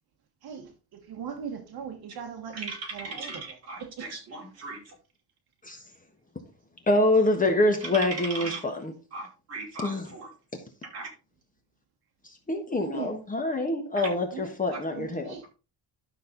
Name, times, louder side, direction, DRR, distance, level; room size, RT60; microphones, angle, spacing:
voice 1, 0.4-3.4 3.8-4.1 12.8-13.2 14.0-14.5 14.9-15.4, right 6 dB, 60° right, 1.5 m, -39 dB
voice 2, 2.5-4.9 7.8-8.6 9.1-10.3 10.9-11.1 14.0-14.1 14.7-14.8, right 3 dB, 35° right, 5.2 m, -38 dB
voice 3, 6.9-8.9 9.8-10.0 12.5-15.3, left 2 dB, 20° left, 1.4 m, -25 dB
12.0 x 6.6 x 3.9 m
cardioid pair, 180°, 41 cm